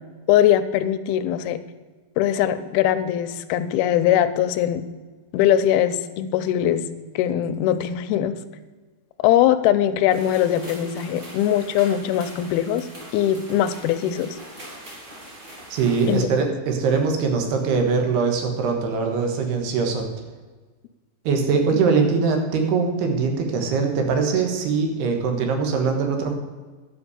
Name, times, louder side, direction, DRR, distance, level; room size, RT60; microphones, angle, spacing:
voice 1, 0.3-1.6 2.2-4.9 5.3-6.9 7.2-8.4 9.2-12.9 13.1-14.4 16.1-16.3, left 11 dB, 80° left, 11 dB, 2.4 m, -21 dB
Rain On Fiber Roof at Night, 10.1-16.2, right 1 dB, 30° right, 2.5 m, -42 dB
voice 2, 15.7-20.1 21.2-26.3, right 5 dB, 80° right, 3 dB, 3.4 m, -22 dB
11.0 x 5.7 x 8.0 m, 1.4 s
omnidirectional pair, 4.7 m